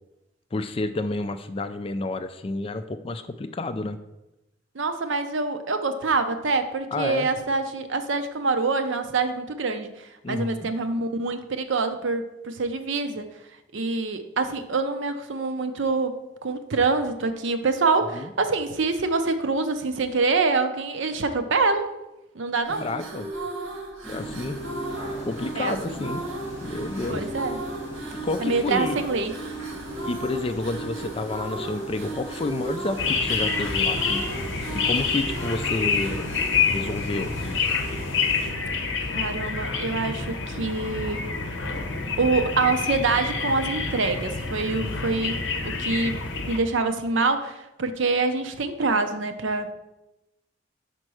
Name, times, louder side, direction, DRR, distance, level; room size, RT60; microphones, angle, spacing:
voice 1, 0.5-4.0 6.9-7.3 10.2-10.7 18.1-18.3 22.7-23.3 24.1-24.6 25.3-26.2 26.6-27.3 28.2-29.0 30.0-34.2 34.7-36.3 36.7-37.8 44.7-45.1, left 2 dB, 25° left, 10 dB, 0.3 m, -30 dB
voice 2, 4.7-13.3 13.7-21.9 22.3-22.9 25.6-25.7 27.1-27.6 28.4-29.3 39.1-41.3 42.2-45.4 45.6-46.2 46.5-49.7, right 3 dB, 70° right, 9 dB, 0.6 m, -25 dB
sound 1, 22.6-39.0, right 2 dB, 85° right, 1.4 m, -36 dB
sound 2, 24.0-38.5, left 1 dB, 15° right, 1.8 m, -40 dB
sound 3, 33.0-46.6, left 5 dB, 60° left, 0.8 m, -27 dB
5.4 x 4.4 x 6.2 m, 0.95 s
head